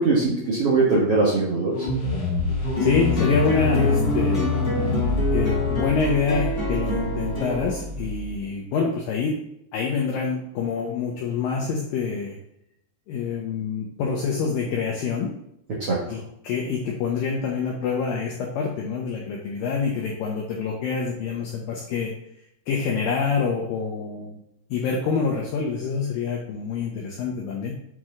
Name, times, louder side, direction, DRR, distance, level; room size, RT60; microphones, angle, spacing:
voice 1, 0.0-1.9 15.8-16.0, right 3 dB, 80° right, -6 dB, 1.3 m, -21 dB
sound 1, 1.7-8.4, left 3 dB, 60° left, 2.9 m, -26 dB
voice 2, 2.8-4.5 5.3-9.4 9.7-12.4 13.1-15.3 16.1-22.1 22.7-24.4 24.7-27.8, left 5 dB, 75° left, -1 dB, 2.1 m, -26 dB
sound 2, 2.8-7.8, left 1 dB, 20° left, 1.5 m, -28 dB
7.6 x 4.7 x 3.7 m, 0.76 s
omnidirectional pair, 4.8 m